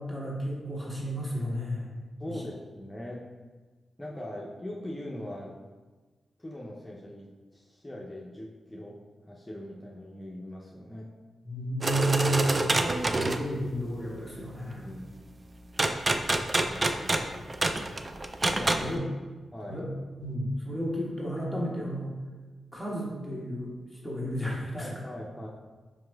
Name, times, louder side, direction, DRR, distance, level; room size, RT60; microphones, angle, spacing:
voice 1, 0.0-2.0 2.3-2.4 11.4-12.6 13.1-14.8 18.8-19.0 19.7-19.8 20.2-22.2 22.7-23.8 24.0-24.9, right 1 dB, 15° right, -4 dB, 1.3 m, -32 dB
voice 2, 2.2-3.3 4.0-5.6 6.4-9.0 9.3-11.1 14.7-15.0 16.5-17.2 18.5-19.0 19.5-19.9 24.7-25.5, left 1 dB, 15° left, -3 dB, 0.6 m, -41 dB
sound 1, 11.8-13.5 15.8-18.9, right 2 dB, 40° right, 0.3 m, -26 dB
5.1 x 2.9 x 2.3 m, 1.3 s
supercardioid pair, 45°, 0 cm